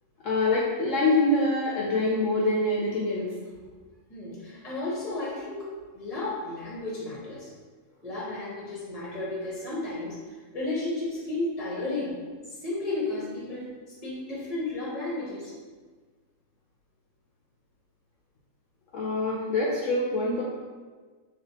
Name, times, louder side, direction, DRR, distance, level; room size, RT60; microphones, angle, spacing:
voice 1, 0.2-3.3 18.9-20.4, left 2 dB, 70° left, -4 dB, 0.9 m, -25 dB
voice 2, 4.1-5.7 5.9-7.5 8.0-12.2 12.5-13.7 14.0-15.5, left 2 dB, 30° left, -7 dB, 0.8 m, -33 dB
4.2 x 2.7 x 2.8 m, 1.4 s
omnidirectional pair, 1.5 m